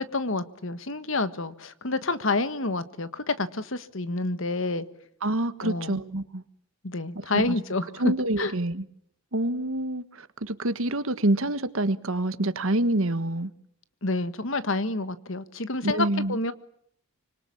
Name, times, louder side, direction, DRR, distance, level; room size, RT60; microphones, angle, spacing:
voice 1, 0.0-4.9 5.6-6.0 6.8-8.5 14.0-16.5, left 2 dB, 60° left, 1.5 m, -28 dB
voice 2, 5.2-6.4 7.3-7.5 8.0-8.8 9.3-13.5 15.8-16.4, right 1 dB, 70° right, 1.5 m, -27 dB
25.5 x 25.0 x 8.6 m
head